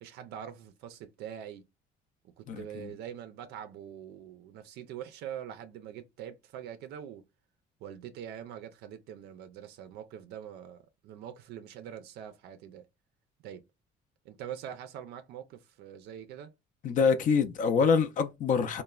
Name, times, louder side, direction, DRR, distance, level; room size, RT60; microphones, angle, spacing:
voice 1, 0.0-1.6 2.2-7.2 7.8-12.9 13.4-13.6 14.2-16.5, right 9 dB, 80° right, 0.4 m, -44 dB
voice 2, 2.5-2.9 16.8-18.8, left 5 dB, 50° left, 0.4 m, -26 dB
3.1 x 2.1 x 2.2 m
cardioid pair, 110°, 17 cm